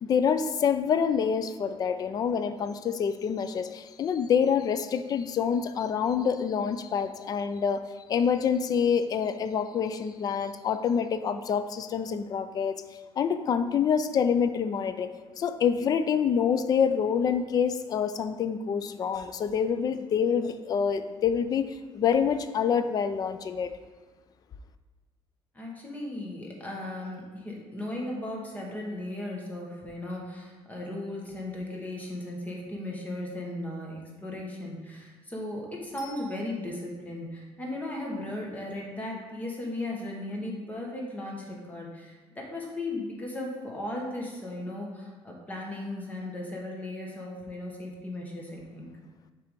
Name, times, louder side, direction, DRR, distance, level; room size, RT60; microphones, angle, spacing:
voice 1, 0.0-12.8 13.2-23.7, left 7 dB, 35° left, 11 dB, 0.3 m, -27 dB
voice 2, 25.5-48.9, left 1 dB, 15° left, -2 dB, 1.1 m, -36 dB
Bicycle bell, 36.0-37.1 46.2-46.3, left 4 dB, 70° left, 1.0 m, -52 dB
6.5 x 3.4 x 5.2 m, 1.3 s
cardioid pair, 160°, 11 cm